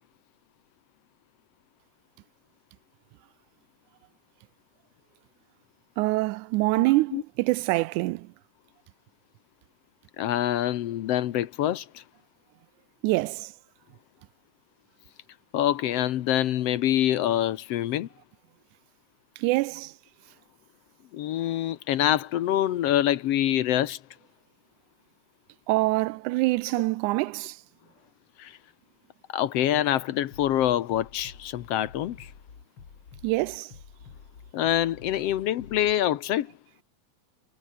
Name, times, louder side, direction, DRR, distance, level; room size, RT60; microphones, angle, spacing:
voice 1, 6.0-8.3 13.0-13.5 19.4-19.9 25.7-27.6 33.2-33.7, right 21 dB, 90° right, 2.0 m, -25 dB
voice 2, 10.2-12.0 15.5-18.1 21.1-24.0 28.4-28.6 29.3-32.3 34.5-36.5, left 12 dB, 65° left, 1.7 m, -25 dB
Bass drum, 30.3-35.9, left 6 dB, 45° left, 3.0 m, -49 dB
omnidirectional pair, 3.4 m